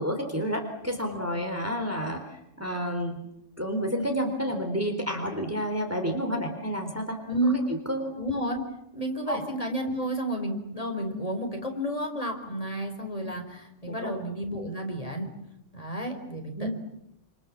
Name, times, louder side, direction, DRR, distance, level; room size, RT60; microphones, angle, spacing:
voice 1, 0.0-3.2 3.6-7.2 7.9-8.2 9.3-9.4 13.9-14.1 16.6-16.7, equal, 10° right, 3 dB, 3.7 m, -30 dB
voice 2, 7.3-7.6 8.2-8.6 8.9-15.3 15.7-16.7, right 1 dB, 30° left, 4 dB, 4.8 m, -31 dB
28.0 x 27.5 x 7.3 m, 0.82 s
omnidirectional pair, 1.3 m